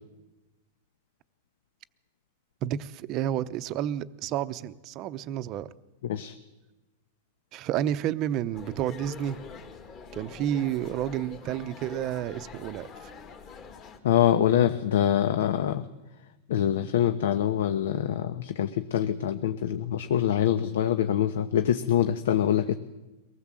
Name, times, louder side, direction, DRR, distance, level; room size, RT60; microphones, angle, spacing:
voice 1, 2.6-5.7 7.5-9.4 10.1-13.1, right 11 dB, 30° right, 13 dB, 0.7 m, -30 dB
voice 2, 6.0-6.3 14.0-15.9 16.5-22.7, left 10 dB, 75° left, 9 dB, 1.1 m, -25 dB
sound 1, 8.5-14.0, left 5 dB, 25° left, 2.3 m, -45 dB
23.5 x 19.0 x 7.6 m, 1.1 s
supercardioid pair, 170°, 0 cm